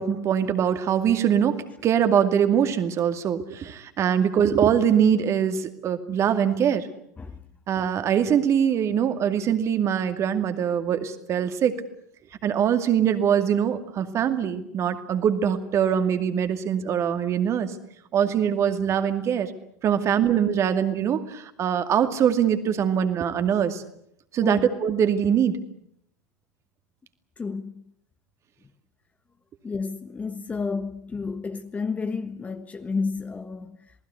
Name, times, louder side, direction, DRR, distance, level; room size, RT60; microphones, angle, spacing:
voice 1, 0.0-6.9 7.7-11.7 12.4-17.8 18.1-19.5 19.8-23.8 24.3-25.6, right 8 dB, 30° right, 2.3 m, -23 dB
voice 2, 27.4-27.8 29.6-33.9, left 4 dB, 15° left, 1.3 m, -31 dB
27.5 x 19.5 x 8.3 m
figure-of-eight pair, 85°, 9 cm